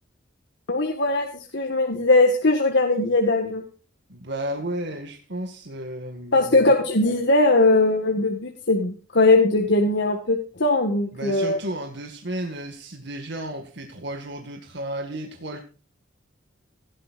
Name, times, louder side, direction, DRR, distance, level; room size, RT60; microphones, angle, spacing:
voice 1, 0.7-1.3 1.5-3.6 6.3-11.6, left 2 dB, 60° left, 1.8 m, -20 dB
voice 2, 4.1-6.7 11.1-15.6, right 1 dB, 60° right, 2.0 m, -33 dB
17.0 x 12.0 x 2.6 m
head